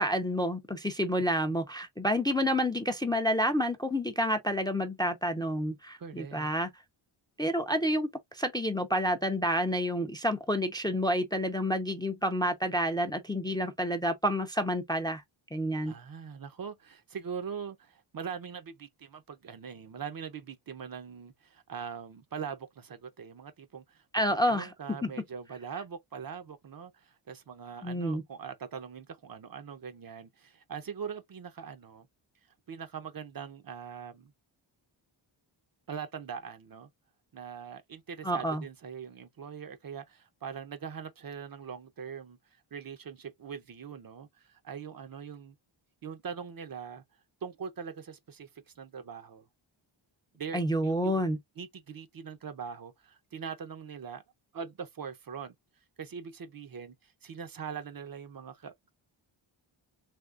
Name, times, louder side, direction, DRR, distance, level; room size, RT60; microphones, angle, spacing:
voice 1, 0.0-6.7 7.4-15.2 15.5-15.9 24.1-24.7 25.0-25.1 27.8-28.2 38.2-38.6 50.5-51.4, equal, 10° left, 0.4 m, -29 dB
voice 2, 6.0-6.5 15.9-24.0 24.5-32.1 32.7-34.3 35.9-36.9 37.3-45.5 46.0-47.0 47.4-49.4 50.3-51.2 51.6-54.2 54.5-55.5 56.0-58.9, right 6 dB, 45° right, 0.5 m, -42 dB
3.5 x 3.0 x 2.4 m
wide cardioid pair, 120°, 49 cm